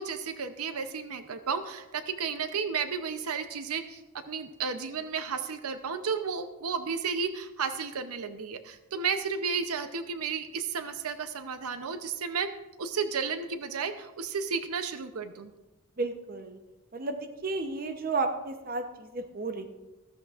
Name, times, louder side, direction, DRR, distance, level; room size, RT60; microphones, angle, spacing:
voice 1, 0.0-12.5 12.8-15.5, right 5 dB, 85° right, 9 dB, 0.7 m, -33 dB
voice 2, 16.0-16.6 16.9-19.7, right 3 dB, 40° right, 6 dB, 0.8 m, -32 dB
14.5 x 13.5 x 2.5 m, 1.1 s
head